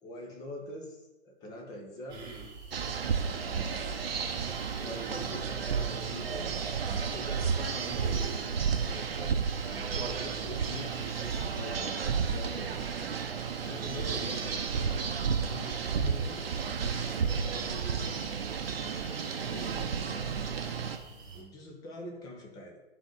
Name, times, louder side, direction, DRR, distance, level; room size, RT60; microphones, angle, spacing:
voice 1, 0.0-2.2 3.2-4.3 4.8-6.6 6.9-8.2 8.9-9.4 9.7-10.9 11.5-13.2 13.5-15.0 15.3-16.4 17.4-18.4 19.3-20.8 21.3-22.8, left 1 dB, 10° left, 1 dB, 0.8 m, -45 dB
sound 1, 2.1-21.4, right 4 dB, 10° right, 1.3 m, -46 dB
sound 2, 2.7-21.0, right 6 dB, 60° right, 0.9 m, -32 dB
11.0 x 3.9 x 3.9 m, 1.0 s
figure-of-eight pair, 135°, 34 cm